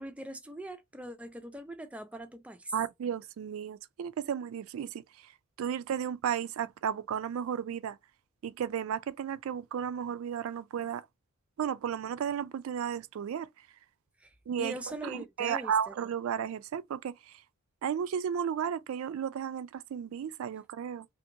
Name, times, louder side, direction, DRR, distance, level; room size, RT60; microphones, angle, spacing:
voice 1, 0.0-2.7 14.2-15.9, right 1 dB, 5° right, 0.4 m, -42 dB
voice 2, 2.7-5.3 5.6-8.0 8.4-11.1 11.6-13.5 14.5-17.3 17.8-21.1, right 8 dB, 85° right, 0.3 m, -34 dB
2.8 x 2.5 x 2.6 m
head